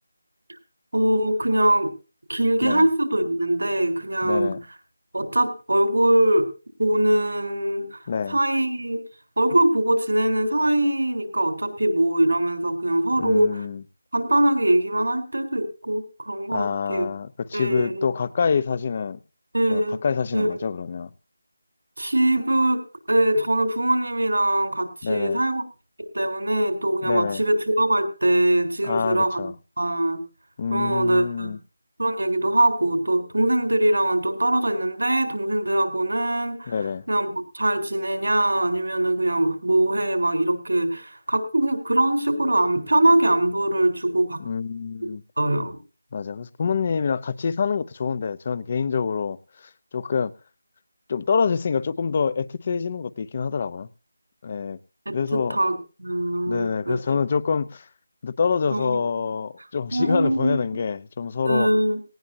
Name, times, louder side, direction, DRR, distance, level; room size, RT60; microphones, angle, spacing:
voice 1, 0.9-1.9 2.3-4.6 5.1-6.5 6.8-8.0 8.3-9.0 9.4-13.6 14.1-17.1 17.5-18.1 19.5-20.0 20.3-20.6 22.0-22.8 23.1-25.6 26.1-29.5 29.8-30.2 30.7-31.5 32.0-36.7 37.1-44.4 45.4-45.8 55.1-57.2 58.7-59.3 59.9-60.6 61.4-62.0, right 1 dB, 85° right, 4.0 m, -22 dB
voice 2, 4.2-4.6 8.1-8.4 13.2-13.8 16.5-19.2 19.7-21.1 25.0-25.4 27.0-27.4 28.8-29.5 30.6-31.6 36.7-37.0 44.4-45.2 46.1-49.4 49.9-50.3 51.1-53.9 54.4-54.8 55.1-55.6 56.5-57.9 58.2-61.7, left 6 dB, 35° left, 0.8 m, -26 dB
18.5 x 17.0 x 2.8 m
figure-of-eight pair, 165°, 0 cm